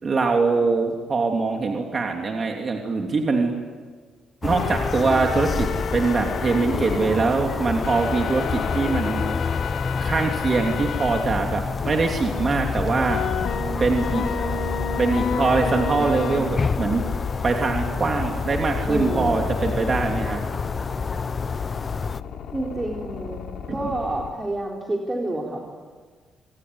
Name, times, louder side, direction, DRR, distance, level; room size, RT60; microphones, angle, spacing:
voice 1, 0.0-3.5 4.4-9.3 10.0-13.2 13.8-14.2 15.0-17.0 17.4-20.4, right 4 dB, 40° right, 2 dB, 3.1 m, -23 dB
sound 1, 4.4-22.2, left 5 dB, 35° left, 0.7 m, -28 dB
sound 2, 4.5-7.1 7.8-11.2 11.8-11.9 13.1-24.3, left 6 dB, 70° left, 3.2 m, -32 dB
voice 2, 18.8-19.4 22.5-25.6, right 1 dB, 20° right, -1 dB, 4.2 m, -29 dB
27.0 x 21.0 x 9.7 m, 1.5 s
cardioid pair, 90°, 0 cm